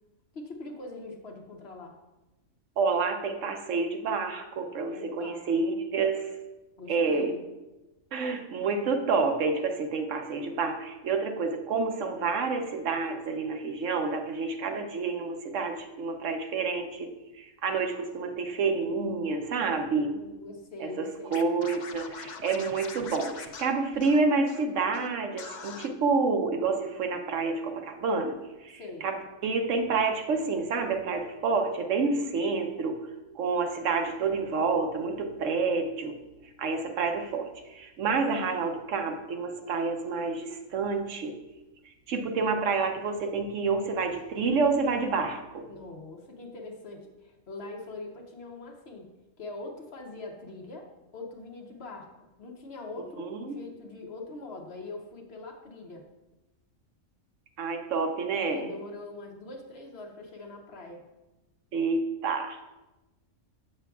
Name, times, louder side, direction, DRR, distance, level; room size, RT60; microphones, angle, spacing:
voice 1, 0.3-2.0 4.9-5.5 6.8-7.5 19.9-21.5 28.7-29.0 45.7-49.1 49.4-52.1 52.4-56.0 58.4-61.0, left 2 dB, 55° left, 2 dB, 1.0 m, -42 dB
voice 2, 2.8-6.3 6.9-7.3 8.1-20.2 20.8-28.4 28.6-33.0 33.3-36.2 36.6-41.4 42.1-45.7 53.2-53.6 57.6-58.7 61.7-62.6, right 4 dB, 70° right, 5 dB, 1.0 m, -28 dB
Scratching (performance technique), 21.3-24.6 24.9-25.1 25.4-25.9, left 6 dB, 90° left, 0.4 m, -43 dB
8.1 x 6.7 x 2.3 m, 1.0 s
omnidirectional pair, 1.4 m